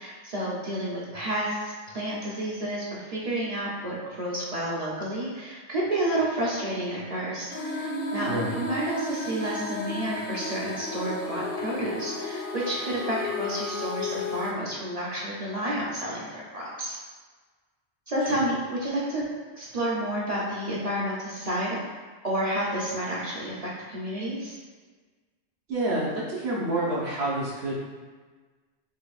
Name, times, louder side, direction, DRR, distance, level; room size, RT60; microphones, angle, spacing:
voice 1, 0.0-17.0 18.1-19.3 19.6-21.8 22.2-24.6, right 1 dB, 45° right, -5 dB, 0.6 m, -30 dB
sound 1, 7.5-14.5, left 2 dB, 60° left, 0.6 m, -33 dB
voice 2, 8.2-8.5 25.7-27.8, right 1 dB, 70° right, -5 dB, 1.1 m, -28 dB
4.9 x 2.3 x 2.4 m, 1.4 s
omnidirectional pair, 1.1 m